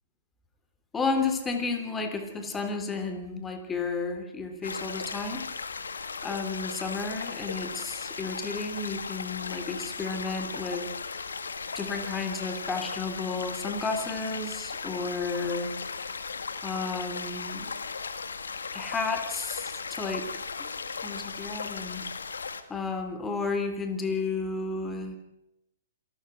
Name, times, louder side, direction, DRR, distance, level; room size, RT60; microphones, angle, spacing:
voice 1, 0.9-5.5 6.2-10.9 11.8-15.8 16.6-17.7 18.7-20.3 21.0-22.1 22.7-25.2, left 4 dB, 15° left, 6 dB, 3.5 m, -32 dB
sound 1, 4.6-22.6, left 5 dB, 75° left, 1.9 m, -37 dB
27.0 x 13.5 x 7.9 m, 0.90 s
figure-of-eight pair, 125°, 0 cm